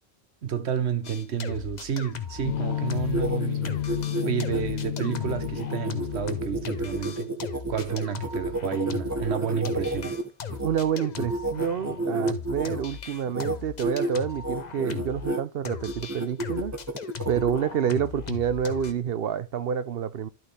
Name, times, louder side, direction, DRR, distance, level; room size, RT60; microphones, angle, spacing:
voice 1, 0.4-3.8 4.2-7.3 7.7-10.2 17.3-17.4, right 8 dB, 85° right, 1.2 m, -30 dB
sound 1, 1.0-3.4 3.6-15.3 15.6-18.9, left 7 dB, 45° left, 0.8 m, -38 dB
sound 2, 2.4-7.3, left 11 dB, 75° left, 0.9 m, -31 dB
sound 3, 2.9-10.7 11.2-12.8 13.3-13.6 13.8-14.1 14.4-15.4 15.8-17.6, right 2 dB, 15° right, 1.1 m, -31 dB
voice 2, 10.6-16.7 17.3-20.3, right 8 dB, 65° right, 0.9 m, -28 dB
12.5 x 6.1 x 3.4 m
omnidirectional pair, 1.1 m